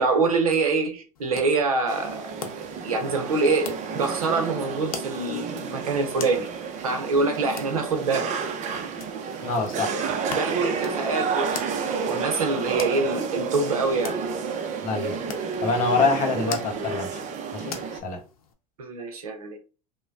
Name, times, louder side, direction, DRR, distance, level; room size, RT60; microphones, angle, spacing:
voice 1, 0.0-2.3 2.8-6.5 6.8-8.3 10.3-14.2 18.8-19.6, right 3 dB, 90° right, 0.7 m, -25 dB
sound 1, 1.1-18.5, left 6 dB, 85° left, 0.6 m, -43 dB
sound 2, 1.9-18.0, right 5 dB, 40° right, 0.6 m, -31 dB
voice 2, 9.4-10.1 14.8-15.2 15.6-17.2 17.5-17.8 18.0-18.2, left 4 dB, 45° left, 1.0 m, -25 dB
3.1 x 2.2 x 2.5 m
hypercardioid pair, 85°, 18 cm